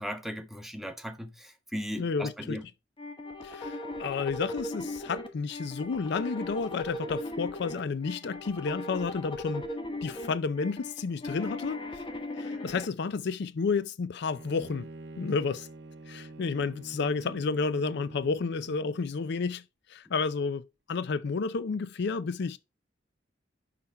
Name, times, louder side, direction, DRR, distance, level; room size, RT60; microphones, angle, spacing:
voice 1, 0.0-2.6, equal, ahead, 0.8 m, -37 dB
voice 2, 2.0-2.6 3.4-9.6 10.0-11.8 12.4-14.9 15.2-15.7 16.1-19.6 19.9-20.6 20.9-22.6, left 4 dB, 60° left, 0.4 m, -31 dB
sound 1, 3.0-12.8, left 1 dB, 30° left, 1.3 m, -38 dB
Bowed string instrument, 14.3-19.1, right 2 dB, 65° right, 0.7 m, -46 dB
5.9 x 5.6 x 4.3 m
head